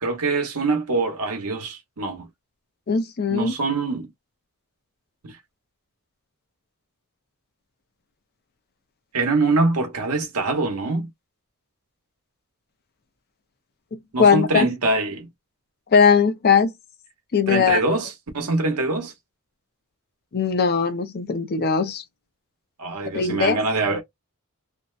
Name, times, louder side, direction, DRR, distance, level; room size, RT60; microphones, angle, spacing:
voice 1, 0.0-2.3 3.3-4.1 5.2-5.4 9.1-11.1 14.1-15.3 17.5-19.1 22.8-24.0, right 3 dB, 85° right, 0.9 m, -24 dB
voice 2, 2.9-3.5 14.2-14.7 15.9-16.7 17.3-17.8 20.3-22.0 23.1-23.6, left 6 dB, 45° left, 0.5 m, -19 dB
2.6 x 2.1 x 2.3 m
head